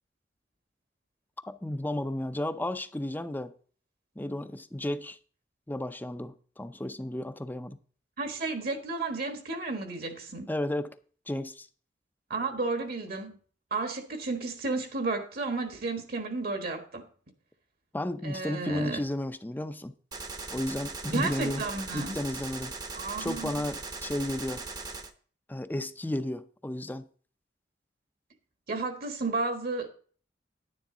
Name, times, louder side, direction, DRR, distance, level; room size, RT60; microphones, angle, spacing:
voice 1, 1.5-3.5 4.2-5.2 5.7-7.8 10.5-11.0 11.3-11.7 17.9-19.9 20.5-21.6 21.9-22.7 23.2-24.6 25.5-27.1, left 1 dB, 10° left, 0.6 m, -33 dB
voice 2, 8.2-10.5 12.3-13.4 13.7-17.1 18.2-19.0 21.1-22.2 22.9-23.7 28.7-29.9, right 3 dB, 55° right, 1.4 m, -32 dB
Gunshot gunfire, 20.1-25.1, right 3 dB, 25° right, 0.9 m, -39 dB
10.5 x 10.0 x 3.8 m
head